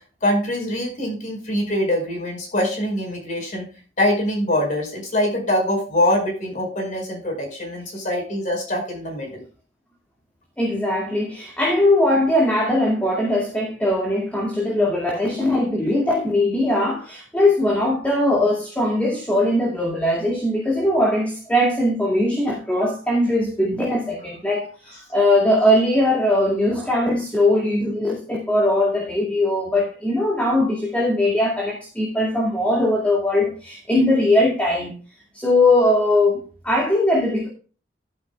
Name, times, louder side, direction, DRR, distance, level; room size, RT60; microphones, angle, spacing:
voice 1, 0.2-3.7 4.0-9.4, left 1 dB, 40° left, 1 dB, 5.0 m, -23 dB
voice 2, 10.6-34.9 35.3-37.5, left 1 dB, 10° left, -3 dB, 2.2 m, -20 dB
12.0 x 10.5 x 2.3 m, 0.37 s
head